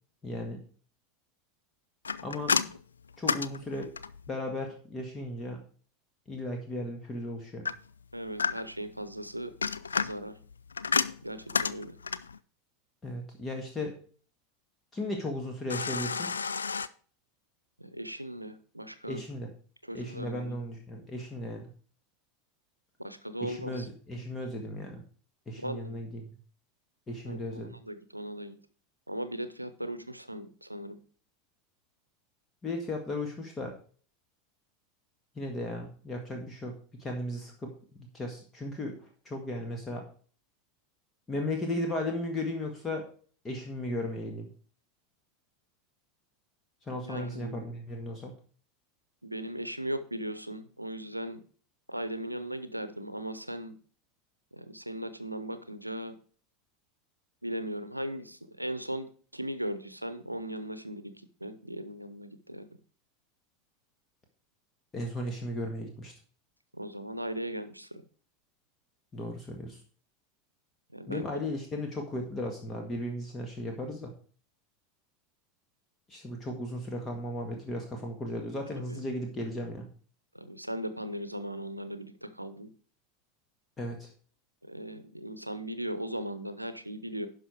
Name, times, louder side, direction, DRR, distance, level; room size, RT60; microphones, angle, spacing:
voice 1, 0.2-0.6 2.2-2.7 3.2-3.9 4.3-5.6 6.3-7.7 13.0-13.9 14.9-16.3 19.1-19.5 19.9-21.7 23.4-25.0 25.5-26.2 27.1-27.7 32.6-33.7 35.3-36.7 37.0-37.7 38.0-40.0 41.3-43.1 43.4-44.5 46.9-48.3 64.9-66.1 69.1-69.8 71.1-74.1 76.1-79.9 83.8-84.1, left 1 dB, 20° left, 2 dB, 1.7 m, -36 dB
sound 1, 2.0-4.3 7.7-8.9 9.4-12.4 15.7-16.9, left 5 dB, 75° left, 0.4 m, -31 dB
voice 2, 8.1-9.5 10.0-10.3 11.2-12.0 17.8-19.2 19.8-20.6 23.0-23.9 25.6-26.0 27.3-28.6 29.1-31.0 47.0-47.7 49.2-51.4 51.9-53.8 54.5-56.2 57.4-61.1 61.4-62.7 66.7-68.0 70.9-71.3 78.7-79.0 80.3-82.7 84.6-87.3, right 1 dB, 90° right, 12 dB, 0.8 m, -38 dB
11.0 x 5.5 x 4.6 m, 0.43 s
figure-of-eight pair, 80°, 0 cm